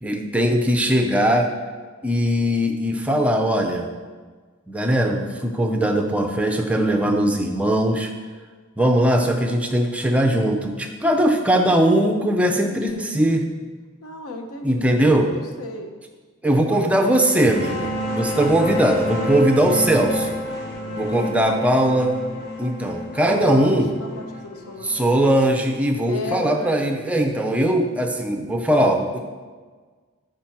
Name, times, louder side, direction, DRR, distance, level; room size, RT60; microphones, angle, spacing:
voice 1, 0.0-1.5 2.0-3.9 4.7-8.1 8.8-13.4 14.6-15.3 16.4-20.4 21.0-22.2 22.6-23.9 24.8-29.2, right 1 dB, 5° right, 3 dB, 0.4 m, -20 dB
voice 2, 12.5-13.1 14.0-15.9 16.4-17.2 20.7-21.0 23.3-25.1 26.0-26.8, left 2 dB, 80° left, 5 dB, 0.7 m, -34 dB
sound 1, 17.1-26.5, left 1 dB, 50° left, 0.9 m, -29 dB
5.2 x 4.4 x 5.7 m, 1.5 s
head